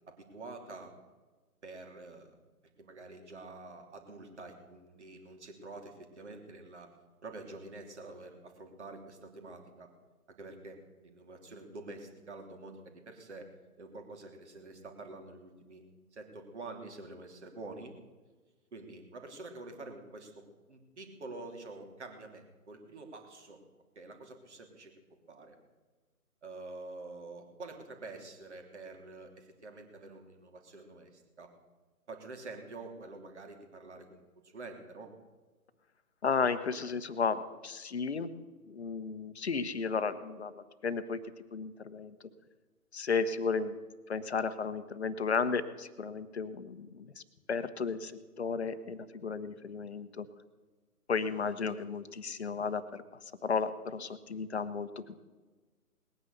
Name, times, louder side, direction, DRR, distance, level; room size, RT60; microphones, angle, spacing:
voice 1, 0.1-0.9 1.6-2.4 2.8-6.9 7.2-9.9 10.4-10.8 11.0-13.5 13.8-15.8 16.1-17.9 18.7-23.6 23.9-24.9 25.3-25.5 26.4-31.5 32.1-34.2 34.5-35.1, right 3 dB, 45° right, 4 dB, 3.2 m, -47 dB
voice 2, 36.2-38.3 38.7-41.2 41.5-42.1 42.9-43.7 44.1-47.2 47.5-50.3 51.1-55.2, left 5 dB, 45° left, 12 dB, 1.1 m, -34 dB
19.5 x 9.7 x 6.7 m, 1.3 s
figure-of-eight pair, 145°, 46 cm